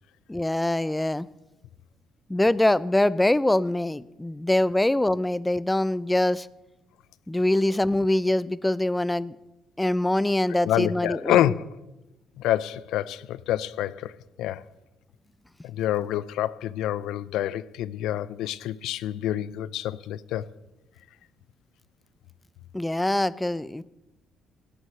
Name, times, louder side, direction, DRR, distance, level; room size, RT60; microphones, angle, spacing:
voice 1, 0.3-1.3 2.3-6.5 7.3-9.4 9.8-11.6 22.7-23.8, left 1 dB, 10° left, 0.5 m, -24 dB
voice 2, 10.7-11.6 12.4-14.1 14.4-14.6 15.6-20.5, left 12 dB, 80° left, 0.5 m, -27 dB
18.0 x 8.0 x 6.7 m
cardioid pair, 90°, 0 cm